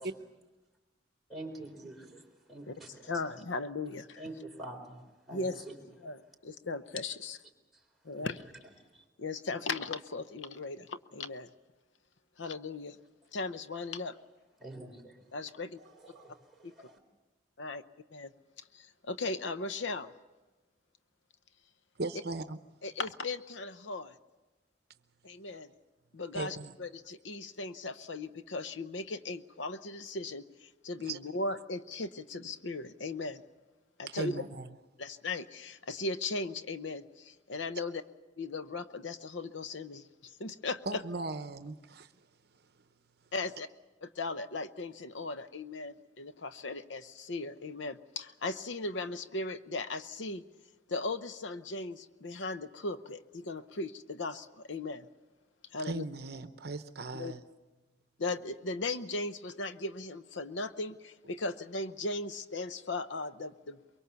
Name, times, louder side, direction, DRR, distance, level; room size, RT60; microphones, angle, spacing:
voice 1, 1.3-3.1 4.2-5.8 7.7-7.8 8.2-8.3 8.9-9.0 14.6-15.2 15.8-17.0, right 1 dB, ahead, -2 dB, 3.9 m, -47 dB
voice 2, 3.1-4.2 5.3-5.6 6.0-7.4 8.0-8.4 9.2-11.5 12.4-13.0 13.3-14.2 15.3-15.8 16.6-16.7 17.6-17.8 18.1-18.3 18.7-20.1 22.8-24.1 25.2-25.7 26.1-33.4 34.0-34.4 35.0-38.0 38.4-41.0 43.3-43.7 44.0-50.4 50.9-55.1 55.7-56.0 57.1-57.3 58.2-64.0, left 3 dB, 85° left, 11 dB, 0.9 m, -37 dB
voice 3, 22.0-22.6 26.3-26.7 31.0-31.2 34.1-34.7 40.9-42.1 55.8-57.4, right 3 dB, 60° right, 10 dB, 0.8 m, -38 dB
23.5 x 23.0 x 7.0 m, 1.2 s
head